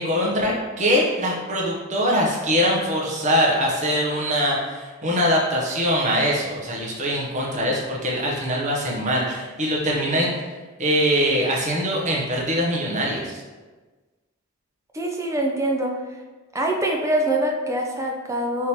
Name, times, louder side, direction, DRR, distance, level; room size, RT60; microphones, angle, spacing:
voice 1, 0.0-10.3 10.8-13.4, equal, 35° right, -3 dB, 0.8 m, -22 dB
voice 2, 14.9-15.9 16.5-18.7, right 1 dB, 15° right, 1 dB, 0.5 m, -24 dB
3.6 x 3.0 x 4.2 m, 1.3 s
head